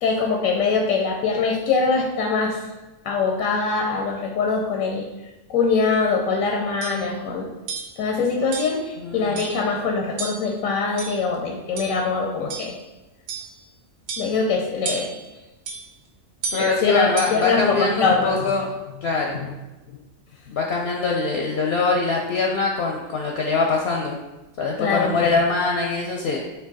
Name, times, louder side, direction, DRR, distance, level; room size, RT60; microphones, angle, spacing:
voice 1, 0.0-2.6 3.0-5.1 5.5-7.5 8.0-12.7 14.2-15.1 16.6-18.3 19.3-19.5 24.8-25.1, left 4 dB, 85° left, 1 dB, 1.0 m, -23 dB
sound 1, 6.3-6.4 6.8-7.1 7.7-8.0 8.5-8.8 9.4-9.7 10.2-10.5 11.0-11.4 11.8-12.0 12.5-12.8 13.3-13.6 14.1-14.4 14.8-15.3 15.7-15.9 16.4-16.7 17.2-17.5, right 4 dB, 75° right, 1.1 m, -32 dB
voice 2, 9.0-9.4 16.5-18.7 19.0-19.4 20.5-24.2 24.6-26.4, left 4 dB, 65° left, 0 dB, 0.7 m, -23 dB
4.5 x 2.8 x 3.9 m, 1.1 s
omnidirectional pair, 1.4 m